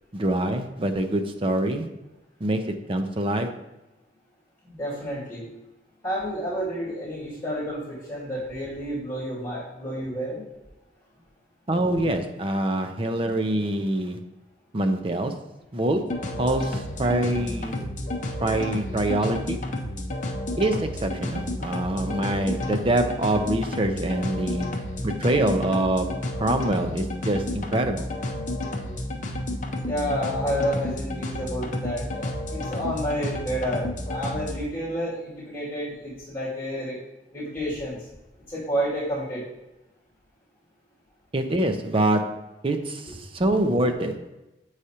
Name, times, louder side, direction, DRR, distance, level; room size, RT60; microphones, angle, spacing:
voice 1, 0.1-1.9 2.4-3.6 11.7-14.2 14.7-15.5 15.7-17.9 18.4-19.6 20.6-24.7 25.0-28.1 41.3-44.3, right 1 dB, 30° right, 6 dB, 0.6 m, -25 dB
voice 2, 4.6-5.5 6.0-10.4 29.8-37.0 37.3-38.0 38.5-39.5, equal, 15° left, -8 dB, 2.3 m, -30 dB
sound 1, 16.1-34.5, left 1 dB, 45° left, 0.7 m, -31 dB
7.9 x 4.8 x 2.8 m, 1.0 s
head